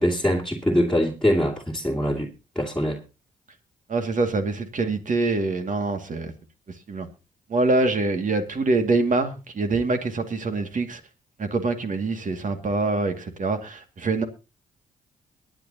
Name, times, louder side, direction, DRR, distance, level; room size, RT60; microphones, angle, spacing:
voice 1, 0.0-3.0, equal, 5° left, 2.6 m, -23 dB
voice 2, 3.9-6.3 6.9-7.1 7.5-11.0 11.4-14.2, right 3 dB, 55° right, 2.3 m, -25 dB
22.5 x 9.3 x 2.9 m
supercardioid pair, 55°, 16 cm